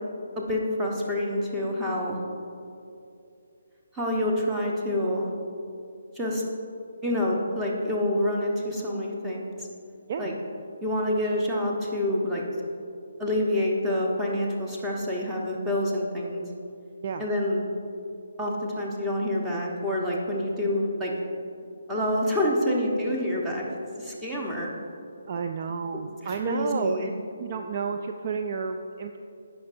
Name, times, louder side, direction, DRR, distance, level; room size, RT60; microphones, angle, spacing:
voice 1, 0.4-2.2 3.9-5.3 6.1-6.4 7.0-9.7 10.2-10.3 10.8-12.4 13.2-16.4 17.2-17.6 18.4-21.1 21.9-23.7 24.0-24.7 26.2-27.1, left 1 dB, 10° right, -3 dB, 1.1 m, -27 dB
voice 2, 25.3-27.1 27.4-29.2, right 5 dB, 35° right, 5 dB, 0.3 m, -31 dB
15.0 x 6.0 x 2.6 m, 2.7 s
figure-of-eight pair, 140°, 0 cm